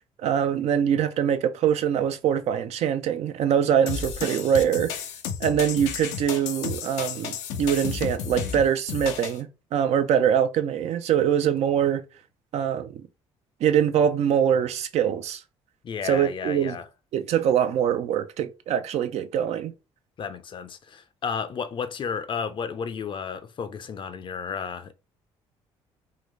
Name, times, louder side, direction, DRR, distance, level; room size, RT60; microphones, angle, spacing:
voice 1, 0.2-4.9 5.4-12.0 12.5-13.0 13.6-15.4 16.0-16.8 17.1-19.7, right 9 dB, 65° right, 0.5 m, -23 dB
sound 1, 3.9-9.4, left 7 dB, 90° left, 0.6 m, -32 dB
voice 2, 15.8-16.8 20.2-24.9, left 6 dB, 45° left, 0.5 m, -32 dB
3.7 x 2.1 x 3.1 m
supercardioid pair, 80°, 12 cm